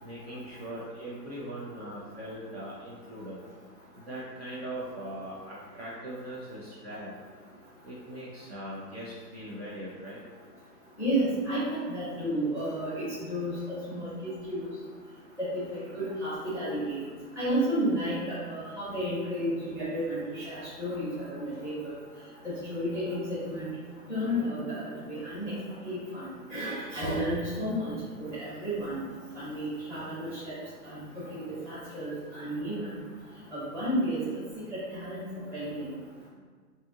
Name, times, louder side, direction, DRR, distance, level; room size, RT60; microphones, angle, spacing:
voice 1, 0.0-3.4 4.0-7.1 7.8-10.2 21.5-21.6, right 1 dB, 40° right, -7 dB, 0.6 m, -40 dB
voice 2, 11.0-14.7 15.4-17.0 17.4-18.2 18.4-21.9 22.4-23.7 24.1-25.5 25.8-27.9 28.2-29.0 29.3-30.5 30.8-33.0 33.5-34.2 34.7-35.2 35.5-35.9, equal, 5° right, -14 dB, 0.8 m, -32 dB
4.1 x 2.7 x 2.4 m, 1.5 s
hypercardioid pair, 155°, 49 cm